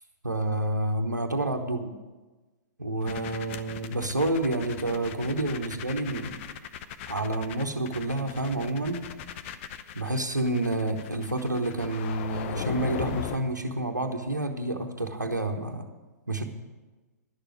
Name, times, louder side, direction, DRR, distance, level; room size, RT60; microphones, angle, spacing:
voice 1, 0.2-1.9 2.8-6.3 7.1-9.1 9.9-15.9 16.3-16.4, right 2 dB, 90° right, 4 dB, 1.0 m, -29 dB
sound 1, 3.0-13.4, left 9 dB, 40° left, 0.8 m, -38 dB
11.0 x 6.8 x 8.8 m, 1.2 s
figure-of-eight pair, 115°, 9 cm